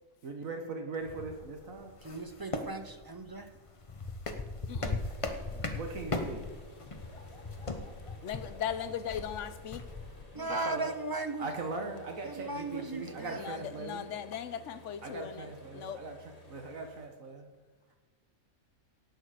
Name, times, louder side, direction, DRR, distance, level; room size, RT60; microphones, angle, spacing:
voice 1, 0.2-1.9 5.5-6.5 10.3-11.0 11.4-14.1 15.0-16.2 16.5-17.5, right 3 dB, 70° right, 4 dB, 1.6 m, -40 dB
sound 1, 1.0-10.2, left 2 dB, 25° left, 0.9 m, -39 dB
voice 2, 2.0-3.5 10.3-11.5 12.2-13.4, right 2 dB, 25° right, 7 dB, 0.5 m, -37 dB
voice 3, 4.7-5.0 8.2-9.8 13.4-16.0, left 9 dB, 65° left, 13 dB, 0.9 m, -38 dB
sound 2, 4.9-17.1, left 1 dB, 85° left, 3.0 m, -54 dB
17.5 x 6.6 x 5.0 m, 1.2 s
omnidirectional pair, 1.5 m